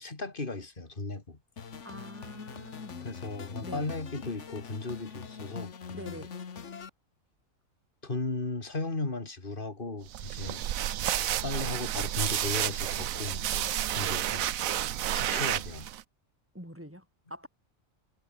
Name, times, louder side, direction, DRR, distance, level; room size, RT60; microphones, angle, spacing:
voice 1, 0.0-1.4 3.0-6.2 8.0-10.6 11.4-14.5 15.1-15.9, left 3 dB, 40° left, 3.2 m, -36 dB
sound 1, 1.6-6.9, left 6 dB, 60° left, 1.8 m, -43 dB
voice 2, 1.8-3.1 3.6-3.9 5.9-6.3 16.5-17.5, equal, 10° right, 8.0 m, -45 dB
sound 2, 10.1-16.0, right 12 dB, 90° right, 1.2 m, -31 dB
omnidirectional pair, 1.4 m